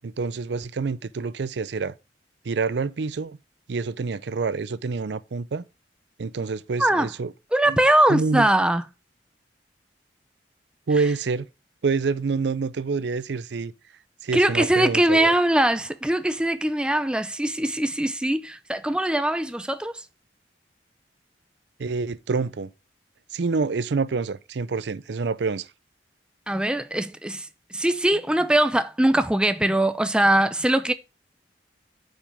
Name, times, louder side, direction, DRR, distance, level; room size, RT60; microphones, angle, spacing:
voice 1, 0.0-1.9 2.4-3.4 3.7-5.6 6.2-7.3 7.7-7.8 8.1-8.5 10.9-11.5 11.8-13.7 14.2-15.3 21.8-22.7 23.3-25.7, right 4 dB, 70° right, 0.5 m, -27 dB
voice 2, 6.8-7.1 7.5-8.8 14.3-20.0 26.5-30.9, right 1 dB, 5° right, 0.5 m, -21 dB
8.7 x 5.4 x 3.4 m
head